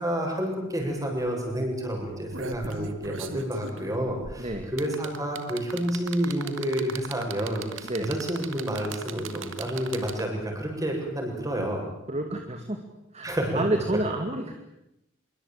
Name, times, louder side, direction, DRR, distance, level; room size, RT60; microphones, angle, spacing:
voice 1, 0.0-11.8 13.2-13.6, equal, 15° right, 2 dB, 7.6 m, -29 dB
sound 1, 0.8-0.9 1.2-1.5 2.0-10.4 11.6-11.7, right 5 dB, 75° right, 2.4 m, -38 dB
voice 2, 4.4-4.7 7.8-8.1 12.1-12.8 13.1-14.5, right 1 dB, 35° right, 5 dB, 2.4 m, -29 dB
25.0 x 23.5 x 9.1 m, 0.86 s
head